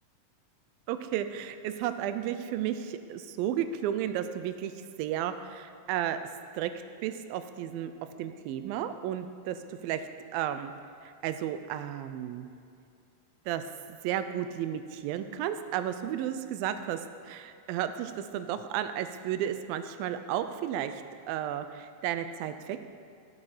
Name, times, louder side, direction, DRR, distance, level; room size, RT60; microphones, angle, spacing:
voice 1, 0.9-6.2 6.5-6.7 7.0-7.9 8.2-10.7 11.0-12.5 13.5-13.6 13.9-21.0 21.3-22.8, right 10 dB, 85° right, 10 dB, 2.4 m, -33 dB
16.0 x 7.5 x 4.9 m, 2.5 s
omnidirectional pair, 4.1 m